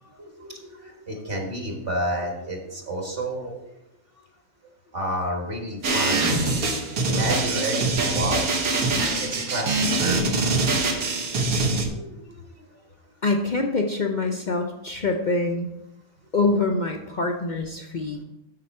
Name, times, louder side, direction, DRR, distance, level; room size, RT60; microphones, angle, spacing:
voice 1, 0.0-3.5 4.9-6.3 7.1-8.6 9.2-10.7 11.6-12.6, right 1 dB, 40° right, 1 dB, 1.6 m, -31 dB
sound 1, 5.8-11.9, right 2 dB, 85° right, 1.7 m, -23 dB
voice 2, 13.2-15.7 16.3-18.2, left 3 dB, 55° left, 3 dB, 0.5 m, -25 dB
7.8 x 6.7 x 4.2 m, 0.90 s
omnidirectional pair, 1.5 m